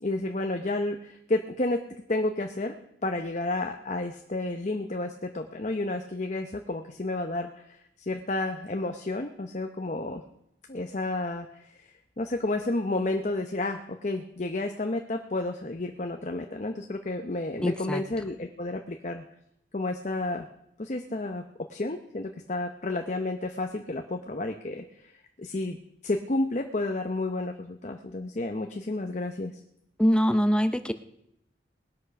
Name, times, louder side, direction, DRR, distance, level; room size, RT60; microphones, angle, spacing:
voice 1, 0.0-2.8 3.0-10.2 10.7-19.2 19.7-20.5 20.8-21.4 21.7-25.1 25.4-25.8 26.0-29.6, left 2 dB, 40° left, 5 dB, 0.7 m, -31 dB
voice 2, 17.6-18.0 30.0-30.9, equal, 5° left, 10 dB, 0.6 m, -23 dB
20.0 x 8.2 x 5.8 m, 0.77 s
head